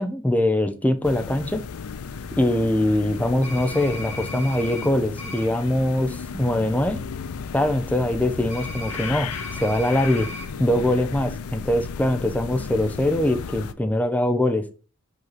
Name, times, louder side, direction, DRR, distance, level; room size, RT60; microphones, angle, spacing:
voice 1, 0.0-1.6 2.3-7.0 7.5-10.3 10.6-14.7, left 1 dB, 5° left, 8 dB, 0.6 m, -22 dB
sound 1, 1.0-13.7, left 6 dB, 75° left, 0.5 m, -34 dB
sound 2, 3.4-4.9 5.2-5.4 8.5-10.5, left 2 dB, 30° left, 2.0 m, -36 dB
5.2 x 4.6 x 4.1 m, 0.36 s
head